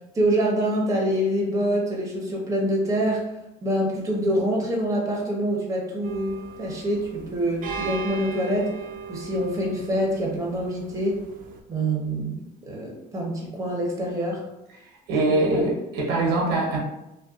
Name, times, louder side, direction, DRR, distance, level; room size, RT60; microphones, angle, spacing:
voice 1, 0.1-3.2 3.6-8.7 9.1-11.2 11.7-14.4 15.3-15.7, right 1 dB, 20° right, -1 dB, 0.7 m, -25 dB
sound 1, 6.0-11.6, right 5 dB, 55° right, 0.4 m, -38 dB
voice 2, 15.1-16.8, right 2 dB, 85° right, -1 dB, 0.7 m, -23 dB
2.6 x 2.1 x 2.3 m, 0.90 s
cardioid pair, 110°, 17 cm